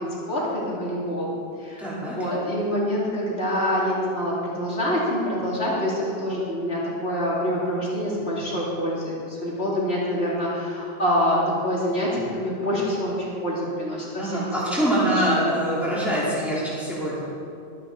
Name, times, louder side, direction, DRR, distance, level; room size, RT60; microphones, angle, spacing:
voice 1, 0.0-1.3 1.6-14.4 15.0-15.3, equal, 80° left, -6 dB, 3.2 m, -26 dB
voice 2, 1.8-2.2 14.2-17.3, right 1 dB, ahead, -9 dB, 3.9 m, -24 dB
22.5 x 9.5 x 4.1 m, 2.5 s
omnidirectional pair, 1.1 m